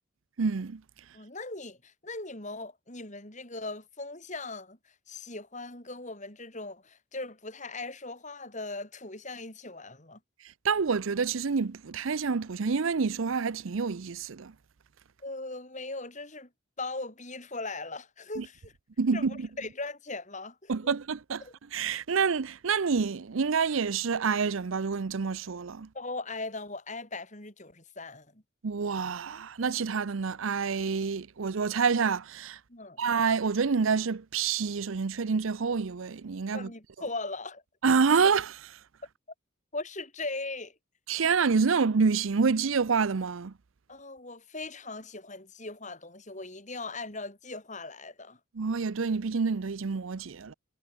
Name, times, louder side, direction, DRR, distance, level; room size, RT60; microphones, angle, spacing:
voice 1, 0.4-0.8 10.6-14.5 18.4-18.5 19.0-19.5 20.7-21.4 21.7-25.9 28.6-32.6 33.0-36.7 37.8-38.8 41.1-43.5 48.6-50.5, right 5 dB, 75° right, 0.6 m, -27 dB
voice 2, 1.1-10.2 15.2-16.5 16.8-18.7 19.1-21.0 21.4-21.5 25.9-28.4 32.7-33.1 36.5-37.6 39.7-40.7 43.9-48.4, left 3 dB, 35° left, 6.0 m, -39 dB
head